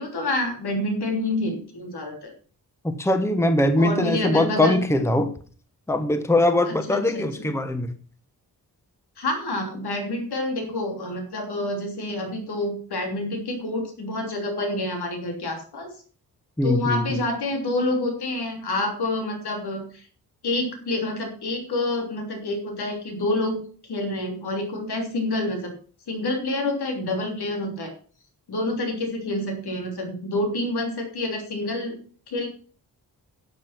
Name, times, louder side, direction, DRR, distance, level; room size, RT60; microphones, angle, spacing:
voice 1, 0.0-2.3 3.8-4.8 6.7-7.5 9.2-15.9 16.6-20.0 20.4-23.6 23.9-25.7 26.1-27.9 28.5-32.0 32.3-32.5, left 2 dB, 85° left, 3.4 m, -28 dB
voice 2, 2.8-5.3 5.9-7.9 16.6-17.2, left 1 dB, 5° left, 1.0 m, -21 dB
12.0 x 7.5 x 5.9 m
wide cardioid pair, 155°, 38 cm